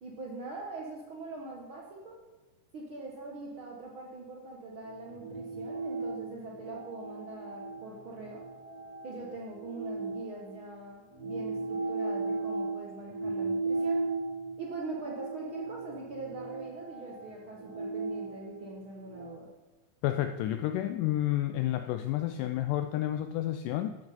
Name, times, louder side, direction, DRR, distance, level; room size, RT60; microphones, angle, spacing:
voice 1, 0.0-2.2 2.7-8.4 9.0-14.0 14.6-19.5, right 2 dB, 60° right, -2 dB, 1.3 m, -42 dB
sound 1, 4.8-10.7 11.1-19.3, right 3 dB, 90° right, 0.7 m, -36 dB
voice 2, 20.0-24.0, left 13 dB, 85° left, 8 dB, 1.9 m, -30 dB
13.0 x 8.0 x 5.4 m, 1.2 s
omnidirectional pair, 4.2 m